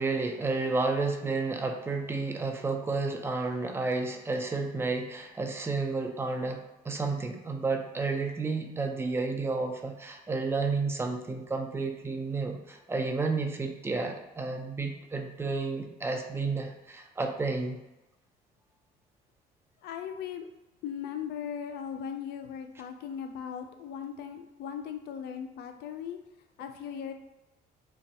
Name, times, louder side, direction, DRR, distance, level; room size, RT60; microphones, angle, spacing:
voice 1, 0.0-17.8, right 3 dB, 15° right, 3 dB, 0.4 m, -31 dB
voice 2, 19.8-20.5 20.8-26.2 26.6-27.1, left 8 dB, 75° left, 6 dB, 0.4 m, -38 dB
2.5 x 2.2 x 4.0 m, 0.98 s
cardioid pair, 110°, 17 cm